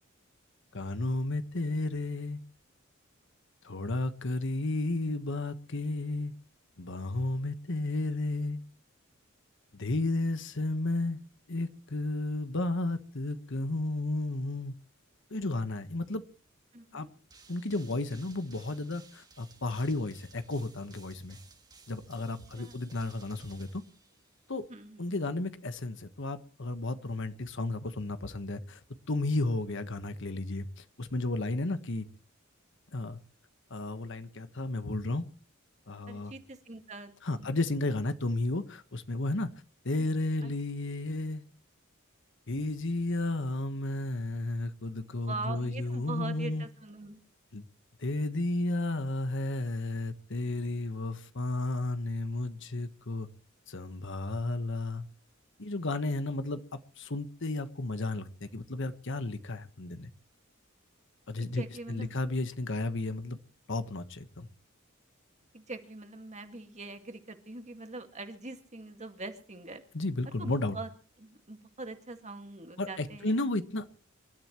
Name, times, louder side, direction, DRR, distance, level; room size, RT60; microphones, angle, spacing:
voice 1, 0.7-2.4 3.6-6.3 6.8-8.6 9.7-11.2 11.5-14.7 15.3-16.2 16.9-17.1 17.5-21.4 21.9-23.8 24.5-24.7 25.0-28.8 29.1-32.1 32.9-33.2 33.7-35.2 35.9-36.3 37.2-39.5 39.8-41.4 42.5-46.7 47.5-47.7 48.0-53.3 53.7-55.1 55.6-60.1 61.3-63.4 63.7-64.5 69.9-70.8 72.8-73.9, left 2 dB, 65° left, 10 dB, 1.3 m, -33 dB
voice 2, 16.7-17.1 22.5-22.8 24.7-25.1 36.1-37.5 40.0-40.1 40.4-40.5 45.3-47.2 61.4-62.1 65.5-69.8 70.4-70.9 71.2-73.3, right 3 dB, 35° right, 6 dB, 2.1 m, -43 dB
sound 1, 17.3-24.6, right 4 dB, 20° right, 1.8 m, -58 dB
27.5 x 13.0 x 3.1 m, 0.39 s
head